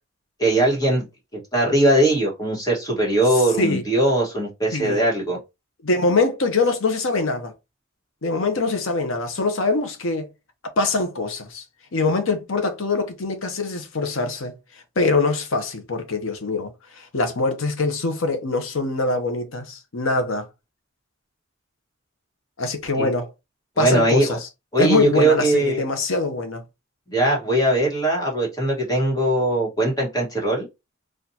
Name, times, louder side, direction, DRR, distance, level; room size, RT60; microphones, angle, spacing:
voice 1, 0.4-1.0 1.3-5.4 22.9-23.1 23.8-24.4 24.7-25.8 27.1-30.7, right 1 dB, 20° left, 1.4 m, -20 dB
voice 2, 5.8-7.5 8.2-10.3 10.8-11.6 11.9-14.5 15.0-20.5 22.6-23.3 23.8-24.5 24.8-26.6, left 3 dB, 70° left, 0.8 m, -23 dB
4.2 x 2.5 x 2.8 m
head